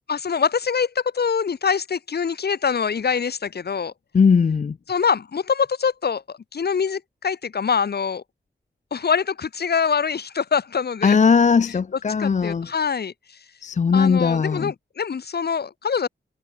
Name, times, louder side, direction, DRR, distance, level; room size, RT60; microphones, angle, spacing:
voice 1, 0.1-3.9 4.9-8.2 8.9-11.2 12.2-13.1 13.9-16.1, left 6 dB, 60° left, 1.0 m, -24 dB
voice 2, 4.1-4.8 11.0-12.7 13.6-14.7, left 5 dB, 40° left, 0.5 m, -18 dB
cardioid pair, 70°, 19 cm